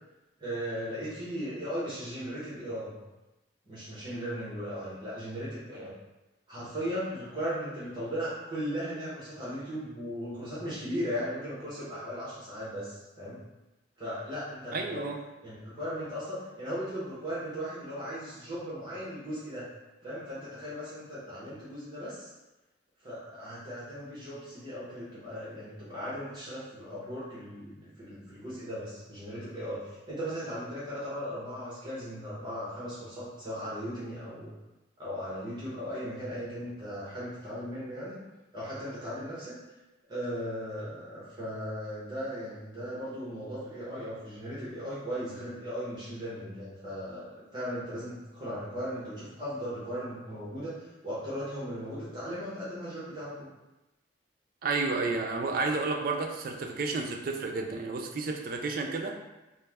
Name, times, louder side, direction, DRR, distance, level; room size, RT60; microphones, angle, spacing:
voice 1, 0.4-2.9 3.7-5.9 6.5-13.4 14.0-15.0 15.4-19.7 20.0-22.3 23.0-34.5 35.0-38.2 38.5-39.6 40.1-50.7 51.0-53.5, equal, 25° right, -10 dB, 0.8 m, -37 dB
voice 2, 14.7-15.2 54.6-59.2, right 3 dB, 50° right, 3 dB, 0.3 m, -31 dB
3.1 x 2.0 x 3.3 m, 1.0 s
head